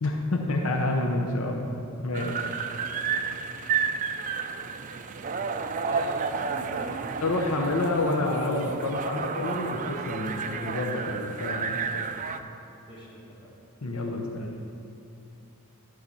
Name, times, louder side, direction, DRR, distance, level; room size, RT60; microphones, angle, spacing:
voice 1, 0.0-2.4 7.2-12.0 13.8-14.6, left 2 dB, 75° left, 1 dB, 0.7 m, -28 dB
sound 1, 2.1-12.4, right 5 dB, 35° right, 0.3 m, -31 dB
voice 2, 2.5-3.1 5.7-7.0 12.9-13.1 13.4-13.5, left 1 dB, 20° left, -6 dB, 1.8 m, -42 dB
11.0 x 3.9 x 6.9 m, 2.8 s
head